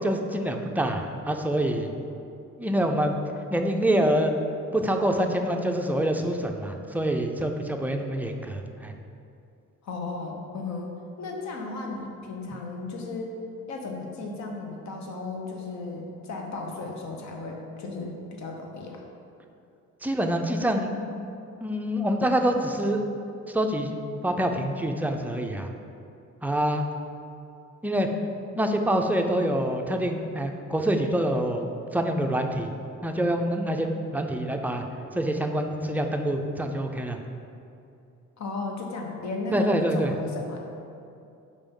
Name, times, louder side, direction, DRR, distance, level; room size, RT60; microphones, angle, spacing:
voice 1, 0.0-1.9 2.6-3.2 3.5-4.3 4.7-8.9 20.0-21.2 21.6-23.1 23.5-24.0 24.2-25.7 26.4-26.9 27.8-28.1 28.6-32.7 33.0-34.8 35.1-37.2 39.5-40.1, right 1 dB, 5° right, 3 dB, 0.4 m, -26 dB
voice 2, 9.8-10.9 11.2-13.3 13.7-19.0 38.4-40.6, left 3 dB, 65° left, 1 dB, 1.0 m, -35 dB
5.1 x 3.5 x 5.3 m, 2.6 s
cardioid pair, 90°, 30 cm